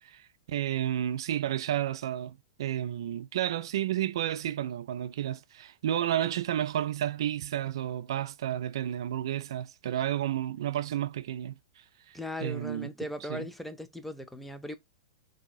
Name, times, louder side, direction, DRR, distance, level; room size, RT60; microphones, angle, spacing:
voice 1, 0.0-12.9 13.3-13.5, right 11 dB, 65° right, 0.4 m, -32 dB
voice 2, 12.1-14.7, left 1 dB, 5° left, 0.5 m, -38 dB
4.5 x 2.7 x 2.3 m
hypercardioid pair, 115°, 3 cm